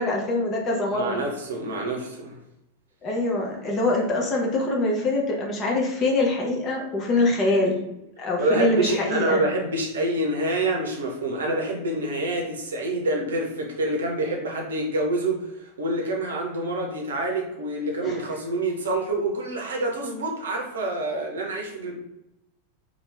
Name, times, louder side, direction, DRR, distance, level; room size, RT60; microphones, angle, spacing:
voice 1, 0.0-1.2 3.0-7.8 8.2-9.4 18.0-18.2, left 2 dB, 25° left, -1 dB, 0.8 m, -24 dB
voice 2, 0.9-2.4 8.4-21.9, right 2 dB, 65° right, 1 dB, 0.7 m, -27 dB
2.9 x 2.2 x 3.3 m, 0.88 s
figure-of-eight pair, 90°, 0 cm